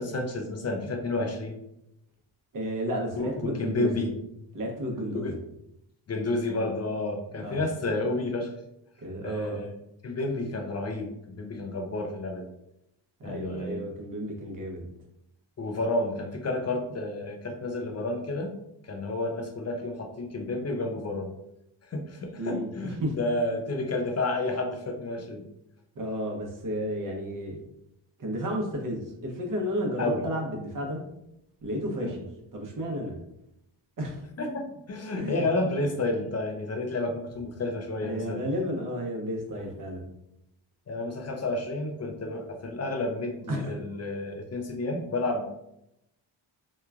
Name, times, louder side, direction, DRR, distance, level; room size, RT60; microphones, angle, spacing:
voice 1, 0.0-1.6 3.2-4.1 5.1-5.4 6.1-8.5 9.2-9.7 10.0-12.5 13.2-13.8 15.6-18.6 18.9-21.3 21.9-25.4 30.0-30.2 32.0-32.2 34.4-38.4 39.6-39.7 40.9-45.5, left 2 dB, 35° left, 3 dB, 0.4 m, -30 dB
voice 2, 2.5-4.0 4.5-5.3 7.4-7.6 9.0-9.6 13.2-14.9 22.4-23.1 26.0-27.6 28.2-31.0 31.6-32.2 32.5-33.1 34.0-34.2 35.2-35.4 38.0-40.1 43.5-43.7, equal, 40° right, 0 dB, 0.8 m, -32 dB
3.0 x 2.2 x 2.3 m, 0.83 s
cardioid pair, 100°, 50 cm